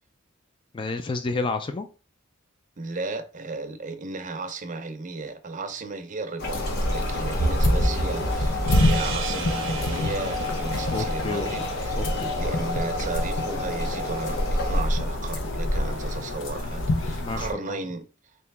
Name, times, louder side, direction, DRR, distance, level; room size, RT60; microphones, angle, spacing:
voice 1, 0.7-1.9 10.9-11.6 11.9-12.3 17.2-17.8, left 3 dB, 25° left, 0.4 m, -30 dB
voice 2, 2.8-12.0 12.4-18.1, right 3 dB, 40° right, 0.6 m, -35 dB
sound 1, 6.4-17.5, left 1 dB, 75° left, 0.8 m, -27 dB
sound 2, 6.4-14.8, left 1 dB, 55° left, 1.0 m, -30 dB
sound 3, 8.7-12.1, right 6 dB, 75° right, 0.7 m, -37 dB
4.1 x 2.8 x 3.4 m
head